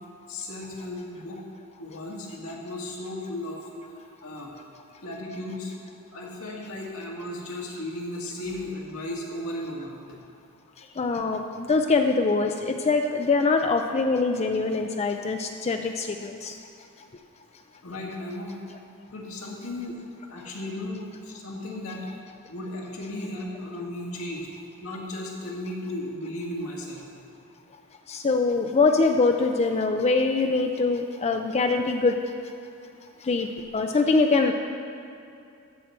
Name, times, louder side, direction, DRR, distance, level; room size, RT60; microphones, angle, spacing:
voice 1, 0.3-1.4 1.8-3.6 3.9-4.5 5.0-5.7 6.1-10.0 17.8-18.6 19.1-20.0 20.3-22.1 22.5-24.5 24.8-27.0, left 1 dB, 85° left, -2 dB, 1.8 m, -35 dB
voice 2, 11.0-16.5 28.1-32.2 33.3-34.5, left 3 dB, 30° left, 5 dB, 0.4 m, -23 dB
14.0 x 6.7 x 4.4 m, 2.6 s
head